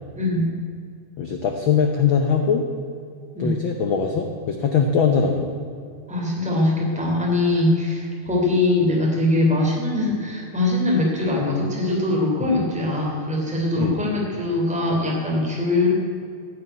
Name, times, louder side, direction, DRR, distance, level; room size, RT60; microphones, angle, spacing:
voice 1, 0.1-0.5 3.3-3.6 6.1-15.9, left 2 dB, ahead, -2 dB, 2.8 m, -22 dB
voice 2, 1.2-2.6 3.4-5.5 12.4-12.5 13.8-14.0, left 6 dB, 85° left, 4 dB, 1.1 m, -21 dB
14.5 x 7.3 x 9.3 m, 2.2 s
omnidirectional pair, 3.6 m